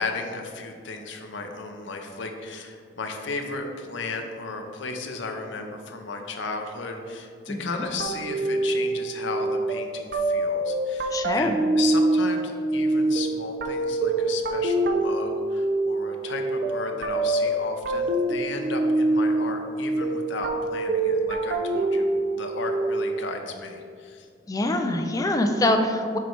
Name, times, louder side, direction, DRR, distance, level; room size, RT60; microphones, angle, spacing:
voice 1, 0.0-24.3, left 3 dB, 65° left, 4 dB, 0.6 m, -35 dB
voice 2, 7.5-7.8 11.1-11.5 24.5-26.2, left 1 dB, 20° left, 5 dB, 0.3 m, -24 dB
sound 1, 8.0-23.4, right 2 dB, 50° right, 0.4 m, -25 dB
6.8 x 3.2 x 4.5 m, 2.3 s
head